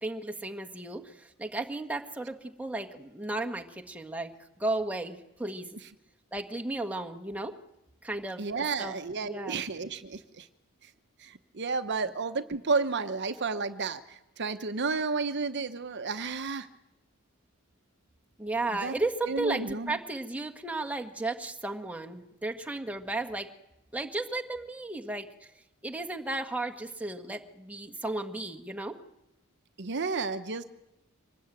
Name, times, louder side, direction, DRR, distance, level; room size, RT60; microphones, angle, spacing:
voice 1, 0.0-4.3 4.6-5.7 6.3-7.5 8.0-8.9 9.2-9.6 18.4-23.5 23.9-25.3 25.8-28.9, right 2 dB, 5° right, 3 dB, 1.6 m, -34 dB
voice 2, 8.4-10.5 10.8-10.9 11.2-16.7 18.7-18.9 19.2-20.0 29.8-30.6, right 4 dB, 55° right, 11 dB, 1.0 m, -32 dB
24.5 x 19.0 x 9.1 m, 0.91 s
head